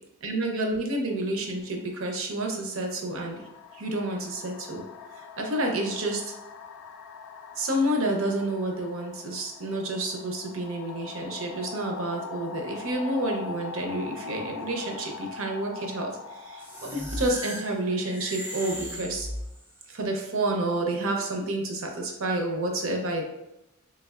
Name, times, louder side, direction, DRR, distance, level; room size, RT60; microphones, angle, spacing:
voice 1, 0.2-3.4 3.7-4.8 5.4-6.2 7.6-19.3 19.9-23.2, right 1 dB, 65° right, 2 dB, 0.6 m, -29 dB
sound 1, 1.5-1.7 2.6-19.3, left 5 dB, 80° left, 0.4 m, -43 dB
sound 2, 16.6-19.8, equal, 10° right, 0.4 m, -37 dB
3.3 x 3.2 x 2.4 m, 0.91 s
head